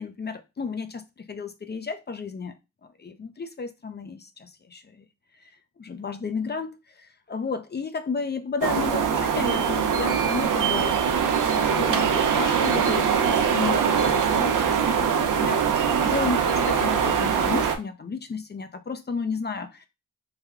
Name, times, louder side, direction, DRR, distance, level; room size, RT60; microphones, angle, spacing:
voice 1, 0.0-2.5 2.8-5.0 5.8-11.1 11.5-14.5 15.0-19.9, left 4 dB, 35° left, 0.5 m, -32 dB
sound 1, 8.6-17.8, right 7 dB, 75° right, 0.6 m, -22 dB
3.3 x 2.2 x 3.5 m
cardioid pair, 55°, 32 cm